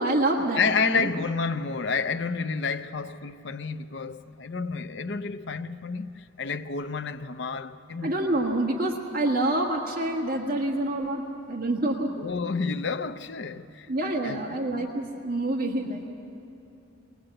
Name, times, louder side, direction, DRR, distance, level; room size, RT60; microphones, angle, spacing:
voice 1, 0.0-1.1 8.0-12.1 13.9-16.1, right 1 dB, 45° right, 1.6 m, -27 dB
voice 2, 0.5-8.1 12.1-13.9 14.2-14.9 15.9-16.1, left 5 dB, 60° left, 0.6 m, -30 dB
21.5 x 18.0 x 7.8 m
head